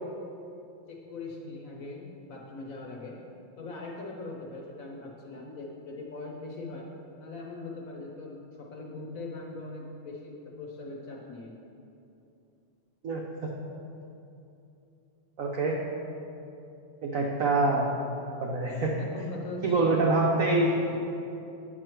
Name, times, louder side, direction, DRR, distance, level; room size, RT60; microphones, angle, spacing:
voice 1, 0.9-3.2 3.6-6.9 7.2-11.6 18.7-20.0 20.7-21.0, left 2 dB, 55° left, -1 dB, 0.9 m, -41 dB
voice 2, 13.0-13.5 15.4-15.7 17.0-17.9 18.4-18.9 19.6-20.7, right 2 dB, 85° right, -1 dB, 0.7 m, -25 dB
8.9 x 6.2 x 4.5 m, 2.8 s
omnidirectional pair, 2.4 m